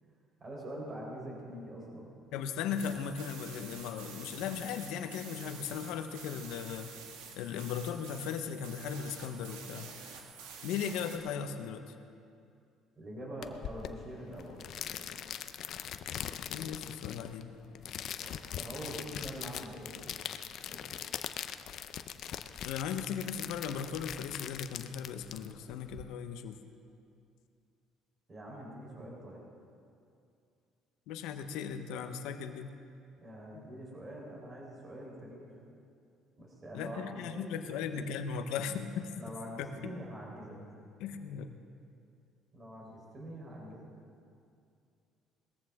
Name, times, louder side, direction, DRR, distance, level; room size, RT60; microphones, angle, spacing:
voice 1, 0.4-2.1 13.0-15.2 18.2-20.0 20.7-21.0 28.3-29.4 33.2-35.5 36.4-38.0 39.2-40.6 42.5-43.9, right 1 dB, 30° right, -2 dB, 3.9 m, -45 dB
voice 2, 2.3-6.9 7.4-9.9 10.6-11.9 16.5-17.6 22.6-26.6 31.1-32.7 36.7-39.1 39.6-39.9 41.0-41.5, left 7 dB, 80° left, 8 dB, 0.9 m, -37 dB
sound 1, 2.8-11.2, right 6 dB, 90° right, 1.7 m, -49 dB
sound 2, 13.4-26.0, left 9 dB, 60° left, 0.6 m, -42 dB
20.0 x 14.0 x 3.6 m, 2.5 s
cardioid pair, 105°, 0 cm